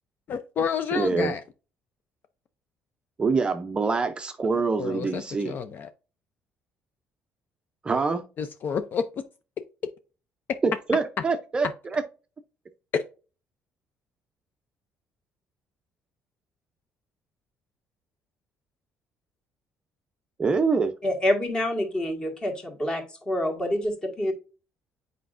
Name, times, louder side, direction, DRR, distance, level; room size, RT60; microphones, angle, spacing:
voice 1, 0.3-1.4 4.8-5.9 8.4-9.1 12.9-13.0, left 6 dB, 40° left, 0.5 m, -29 dB
voice 2, 0.9-1.3 3.2-5.6 7.8-8.2 10.6-12.0 20.4-20.9, right 4 dB, 20° right, 0.5 m, -25 dB
voice 3, 21.0-24.3, left 1 dB, 15° left, 1.6 m, -27 dB
8.2 x 5.0 x 2.5 m
cardioid pair, 155°, 5 cm